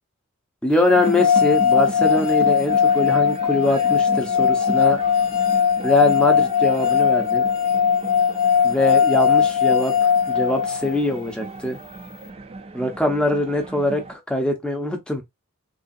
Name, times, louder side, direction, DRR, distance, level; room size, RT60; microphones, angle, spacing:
voice 1, 0.6-5.0 5.8-7.5 8.6-11.8 12.7-15.2, left 1 dB, 5° left, 0.6 m, -23 dB
sound 1, 0.9-11.0, left 7 dB, 75° left, 0.5 m, -19 dB
sound 2, 0.9-14.2, right 2 dB, 25° right, 0.3 m, -35 dB
3.4 x 2.4 x 2.5 m
head